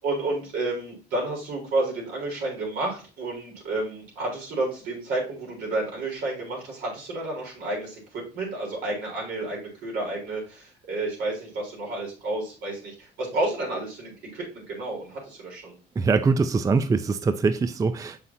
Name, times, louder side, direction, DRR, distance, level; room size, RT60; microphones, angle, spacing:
voice 1, 0.0-15.8, right 2 dB, 80° right, 3.7 m, -31 dB
voice 2, 16.0-18.2, right 4 dB, 20° right, 0.4 m, -23 dB
6.7 x 5.7 x 2.7 m
cardioid pair, 110°, 17 cm